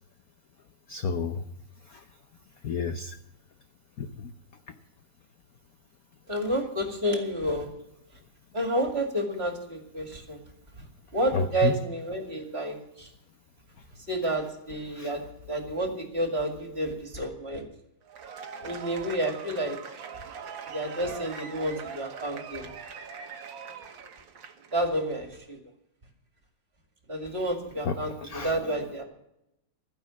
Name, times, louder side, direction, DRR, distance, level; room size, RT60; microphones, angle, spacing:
voice 1, 0.9-1.4 1.9-2.0 2.6-3.2 4.0-4.3 4.7-4.8 11.3-11.7 14.9-15.1 27.8-28.6, left 6 dB, 60° left, 8 dB, 0.9 m, -31 dB
voice 2, 6.3-7.7 8.5-10.4 10.8-10.9 11.1-13.1 14.1-17.7 18.6-19.8 20.7-22.7 24.7-25.6 27.1-28.1 28.4-29.0, right 1 dB, 30° right, 3 dB, 2.3 m, -30 dB
Cheering / Applause / Crowd, 18.0-24.9, right 6 dB, 65° right, 1.9 m, -41 dB
13.5 x 10.5 x 7.1 m, 0.82 s
omnidirectional pair, 2.3 m